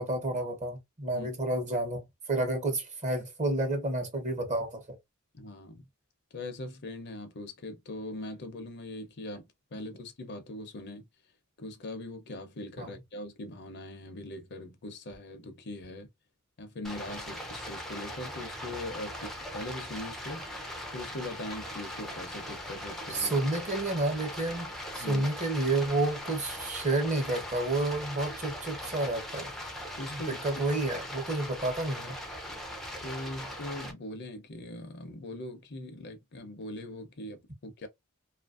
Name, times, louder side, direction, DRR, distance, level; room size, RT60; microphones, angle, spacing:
voice 1, 0.0-4.8 12.8-12.9 23.1-29.5 30.1-32.2, right 2 dB, 35° right, 1.0 m, -30 dB
voice 2, 5.3-5.8 6.3-11.0 11.6-16.1 16.6-20.5 20.9-23.5 25.0-25.3 30.0-30.6 33.0-37.9, left 1 dB, 50° left, 0.7 m, -41 dB
Stream, 16.8-33.9, left 1 dB, ahead, 0.5 m, -40 dB
2.9 x 2.5 x 2.4 m
head